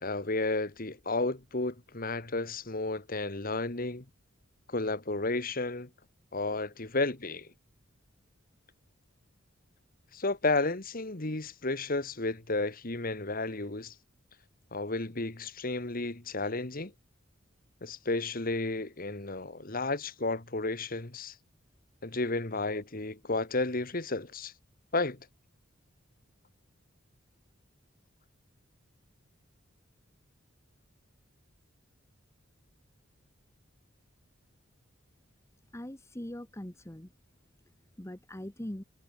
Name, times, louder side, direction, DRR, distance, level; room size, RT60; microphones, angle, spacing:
voice 1, 0.0-4.0 4.7-5.9 6.3-7.5 10.1-13.9 14.7-16.9 17.8-21.3 22.0-24.5 24.9-25.2, left 2 dB, 45° left, 1.9 m, -32 dB
voice 2, 35.7-37.1 38.0-38.8, left 1 dB, 15° left, 1.1 m, -41 dB
head